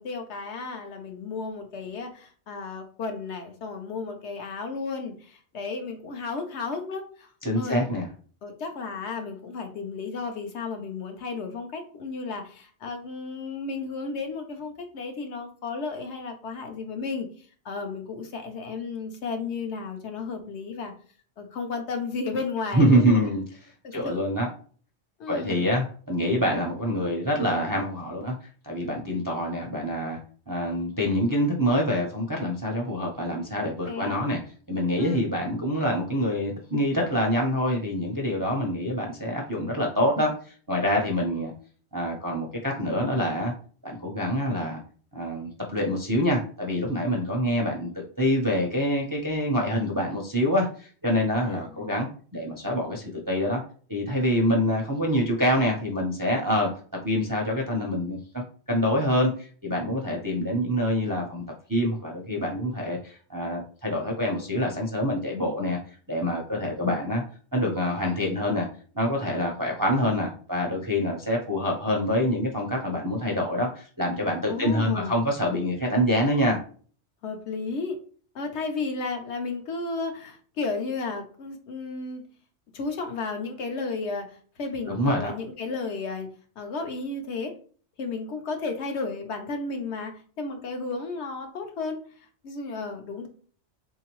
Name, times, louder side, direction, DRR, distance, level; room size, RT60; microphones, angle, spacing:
voice 1, 0.0-7.3 7.6-7.8 8.4-20.9 21.4-23.3 23.8-24.3 25.2-25.7 33.6-34.2 35.0-35.3 51.4-52.0 74.5-75.2 77.2-78.0 78.3-82.2 82.7-87.5 88.0-93.3, left 4 dB, 75° left, 5 dB, 1.0 m, -33 dB
voice 2, 7.4-8.1 22.7-23.4 23.9-24.5 25.3-30.2 30.5-34.4 34.7-41.5 41.9-43.5 43.8-44.8 45.1-53.6 53.9-56.7 57.0-58.4 58.7-61.4 61.7-65.8 66.1-67.2 67.5-68.7 68.9-76.6 84.9-85.3, equal, 25° right, -1 dB, 0.4 m, -26 dB
3.7 x 2.7 x 3.0 m, 0.44 s
omnidirectional pair, 1.2 m